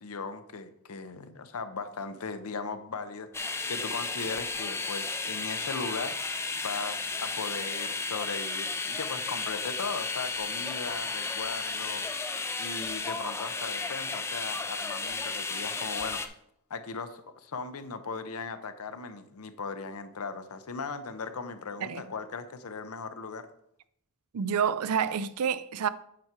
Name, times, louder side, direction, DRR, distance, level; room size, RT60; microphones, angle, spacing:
voice 1, 0.0-6.3 6.6-12.0 12.6-16.3 16.7-23.5, left 4 dB, 80° left, 0.7 m, -38 dB
sound 1, 3.3-16.3, left 4 dB, 10° left, 0.4 m, -33 dB
voice 2, 24.3-25.9, right 7 dB, 85° right, 0.4 m, -28 dB
8.4 x 4.7 x 4.4 m
head